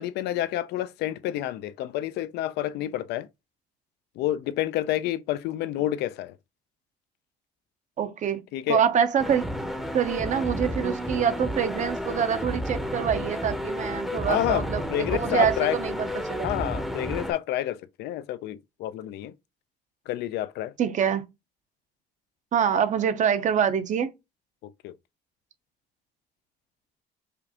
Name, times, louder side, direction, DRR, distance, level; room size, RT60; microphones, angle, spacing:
voice 1, 0.0-3.3 4.2-6.3 8.5-8.8 14.3-15.8 16.4-19.3 20.1-20.7 24.8-24.9, left 13 dB, 80° left, 0.5 m, -29 dB
voice 2, 8.0-8.4 8.7-9.5 9.9-16.5 20.8-21.2 22.5-24.1, right 8 dB, 45° right, 0.7 m, -25 dB
sound 1, 9.2-17.3, equal, ahead, 0.7 m, -31 dB
5.0 x 2.5 x 2.8 m
cardioid pair, 110°, 17 cm